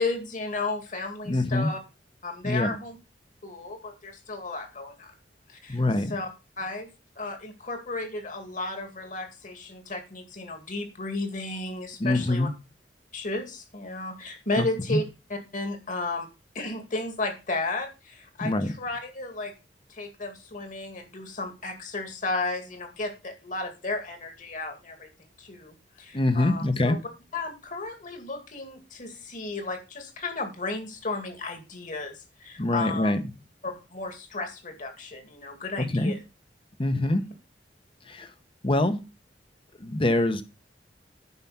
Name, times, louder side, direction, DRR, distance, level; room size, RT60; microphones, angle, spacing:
voice 1, 0.0-1.8 2.2-3.0 3.4-5.1 5.5-5.8 6.1-6.3 6.6-6.9 7.2-12.5 13.1-15.0 15.3-16.3 16.5-19.5 19.9-25.1 25.4-27.0 27.3-33.1 33.6-36.2 37.1-37.2, left 3 dB, 50° left, 6 dB, 2.3 m, -33 dB
voice 2, 1.2-1.7 2.4-2.7 5.7-6.2 12.0-12.5 14.6-14.7 14.9-15.0 18.4-18.7 26.1-27.0 32.6-33.2 35.8-36.1 36.8-37.3 38.0-38.3 38.6-39.0 39.8-40.4, left 1 dB, 30° left, 10 dB, 1.0 m, -24 dB
9.7 x 5.8 x 5.7 m, 0.29 s
head